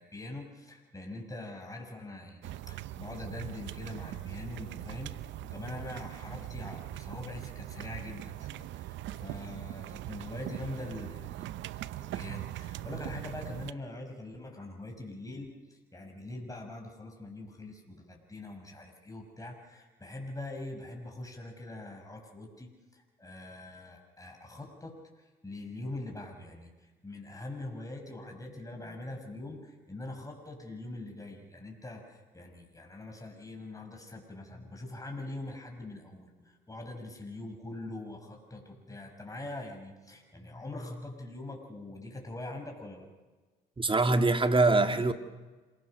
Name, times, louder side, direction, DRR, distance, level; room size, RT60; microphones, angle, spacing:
voice 1, 0.0-5.1 5.4-43.1, left 2 dB, 15° left, 2 dB, 5.6 m, -43 dB
sound 1, 2.4-13.7, right 14 dB, 75° right, 0.8 m, -41 dB
voice 2, 43.8-45.1, right 3 dB, 25° right, 7 dB, 2.1 m, -24 dB
27.0 x 18.0 x 6.4 m, 1.3 s
supercardioid pair, 60°, 20 cm